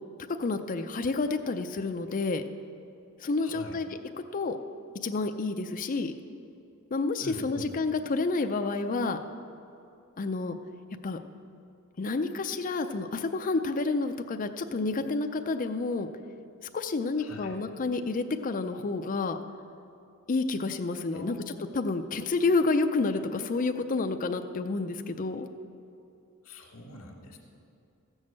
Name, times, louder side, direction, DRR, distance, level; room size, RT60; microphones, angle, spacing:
voice 1, 0.4-2.4 3.2-3.9 4.3-4.6 5.0-6.1 6.9-9.2 10.2-10.6 11.0-11.2 12.0-16.1 16.7-19.4 20.3-25.5, left 3 dB, 40° left, 6 dB, 0.5 m, -29 dB
voice 2, 3.4-3.8 7.2-7.7 17.2-17.5 21.1-21.6 26.4-27.4, left 1 dB, 80° left, 1 dB, 1.8 m, -44 dB
14.5 x 6.4 x 7.4 m, 2.6 s
head